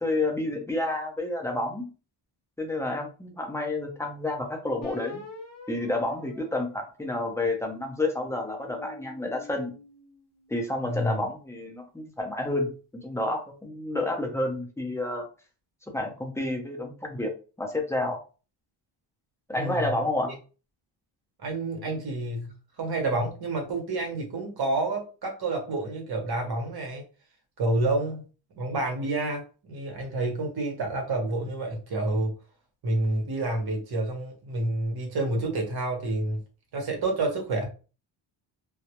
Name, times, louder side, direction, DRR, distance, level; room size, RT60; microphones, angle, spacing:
voice 1, 0.0-1.9 2.6-5.2 5.7-9.7 10.5-15.3 15.9-17.3 17.6-18.2 19.5-20.3 21.9-22.0, left 2 dB, 5° left, 0.4 m, -30 dB
sound 1, 4.8-7.5 8.1-10.6, left 4 dB, 35° left, 0.7 m, -46 dB
voice 2, 10.8-11.2 19.5-20.0 21.4-27.0 27.6-28.2 28.6-32.3 32.8-36.4 36.7-37.7, right 2 dB, 50° right, 0.9 m, -29 dB
2.2 x 2.0 x 2.8 m
wide cardioid pair, 130°, 47 cm